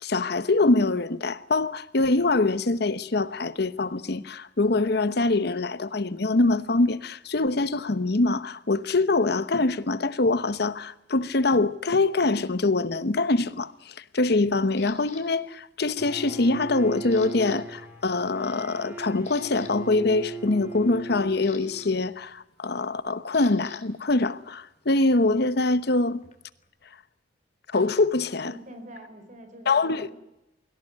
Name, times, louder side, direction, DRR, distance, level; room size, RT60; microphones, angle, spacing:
voice 1, 0.0-26.2 27.7-28.5 29.7-30.1, left 2 dB, 60° left, 1.0 m, -24 dB
Camera, 14.8-15.2 15.8-16.2 16.5-17.6 17.8-18.1 18.6-18.7 19.1-19.7 20.9-23.8 24.1-26.7, left 7 dB, 40° left, 3.3 m, -49 dB
Bowed string instrument, 16.0-22.1, right 3 dB, 10° right, 3.9 m, -39 dB
voice 2, 28.4-30.1, equal, 40° right, 4.5 m, -45 dB
23.0 x 17.0 x 9.4 m
head